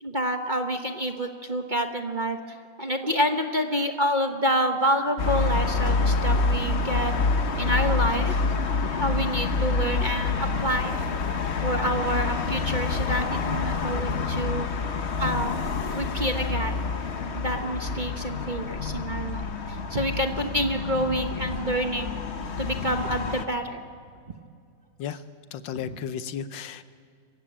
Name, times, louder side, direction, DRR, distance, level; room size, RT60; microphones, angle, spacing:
voice 1, 0.0-7.1 7.6-8.5 9.0-10.9 11.6-14.7 15.2-15.5 15.9-16.7 17.3-22.1 22.6-23.8 25.1-25.2 25.8-26.0, equal, 30° right, 5 dB, 1.1 m, -28 dB
sound 1, 5.2-23.4, left 4 dB, 40° left, 1.2 m, -27 dB
voice 2, 25.5-26.8, left 8 dB, 90° left, 12 dB, 1.5 m, -34 dB
26.0 x 16.0 x 8.7 m, 2.3 s
omnidirectional pair, 2.0 m